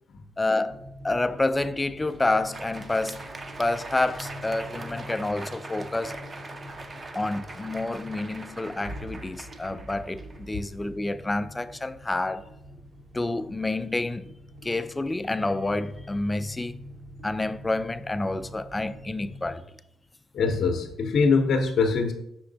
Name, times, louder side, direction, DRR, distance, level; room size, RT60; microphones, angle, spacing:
voice 1, 0.4-0.8 1.0-3.2 3.6-6.2 7.1-12.4 13.1-14.2 14.6-16.8 17.2-19.6, left 2 dB, 15° left, 0.3 m, -28 dB
sound 1, 0.7-19.5, equal, 65° right, 1.1 m, -45 dB
Crowd, 2.0-10.9, right 3 dB, 35° right, 0.5 m, -42 dB
voice 2, 20.3-22.1, left 4 dB, 60° left, 0.6 m, -23 dB
5.7 x 4.3 x 3.9 m
cardioid pair, 90°, 0 cm